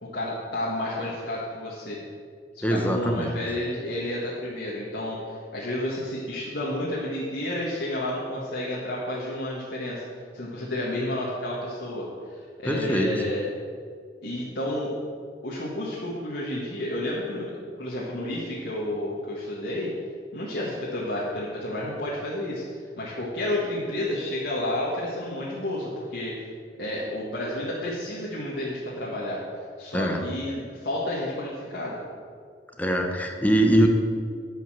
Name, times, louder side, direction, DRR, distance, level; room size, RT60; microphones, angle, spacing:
voice 1, 0.0-2.0 2.5-10.0 10.3-13.5 14.2-14.9 15.4-19.9 20.3-22.6 23.0-26.4 26.8-29.4 29.8-32.0, left 1 dB, 75° left, -7 dB, 1.9 m, -31 dB
voice 2, 2.6-3.4 12.7-13.1 29.9-30.2 32.8-33.9, equal, 10° left, 3 dB, 1.1 m, -22 dB
11.0 x 5.8 x 7.5 m, 2.1 s
head